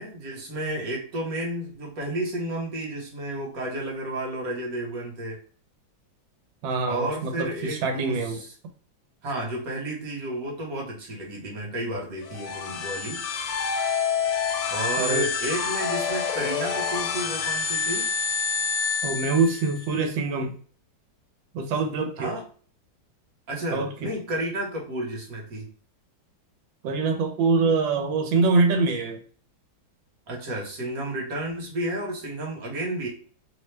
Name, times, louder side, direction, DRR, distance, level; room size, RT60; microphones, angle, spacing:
voice 1, 0.0-5.4 6.9-8.5 9.2-13.2 14.7-18.1 22.2-22.4 23.5-25.7 30.3-33.1, right 1 dB, 55° right, -1 dB, 1.2 m, -32 dB
voice 2, 6.6-8.4 15.0-15.3 19.0-20.6 21.5-22.4 23.7-23.9 26.8-29.2, right 4 dB, 80° right, 4 dB, 1.3 m, -24 dB
sound 1, 12.2-19.9, left 6 dB, 75° left, 1.2 m, -27 dB
3.2 x 2.1 x 3.1 m, 0.42 s
omnidirectional pair, 2.0 m